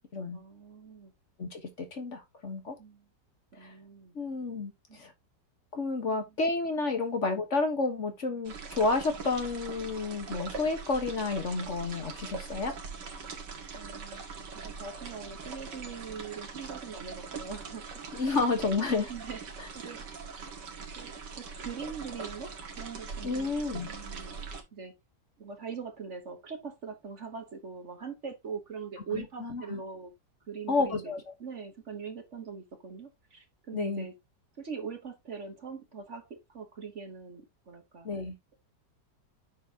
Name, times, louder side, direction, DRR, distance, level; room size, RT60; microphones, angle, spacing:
voice 1, 0.3-1.1 2.8-3.1 3.5-4.1 4.9-5.0 6.1-6.3 13.7-14.2 14.5-18.4 18.8-19.4 19.7-20.0 21.0-24.4 24.7-24.9 25.4-30.1 30.5-31.1 31.4-34.1 34.6-38.1, right 5 dB, 45° right, 1.4 m, -42 dB
voice 2, 1.4-2.7 3.6-3.7 4.1-5.1 5.7-12.7 18.1-19.1 19.6-19.7 23.2-23.9 29.1-29.8 30.7-31.2 33.7-34.1 38.0-38.3, left 3 dB, 45° left, 1.6 m, -30 dB
sound 1, 8.4-24.6, right 5 dB, 75° right, 2.3 m, -42 dB
9.2 x 6.4 x 2.8 m
omnidirectional pair, 1.9 m